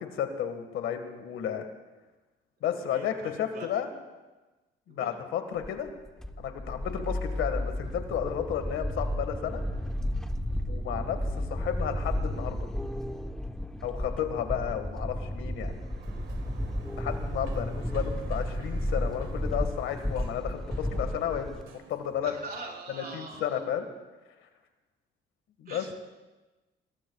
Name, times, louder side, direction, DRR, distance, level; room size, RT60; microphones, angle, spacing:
voice 1, 0.0-1.6 2.6-3.9 4.9-5.9 6.4-9.6 10.7-12.6 13.8-15.7 17.0-22.3 22.9-23.8 25.6-25.9, left 9 dB, 85° left, 7 dB, 1.7 m, -32 dB
voice 2, 2.8-3.7 4.9-5.1 22.2-23.5 25.7-25.9, right 3 dB, 50° right, -2 dB, 4.6 m, -43 dB
sound 1, 5.6-21.6, left 1 dB, ahead, 0.9 m, -33 dB
Sliding door, 15.6-22.8, right 6 dB, 85° right, 1.7 m, -51 dB
25.0 x 20.0 x 2.3 m, 1.2 s
cardioid pair, 90°, 20 cm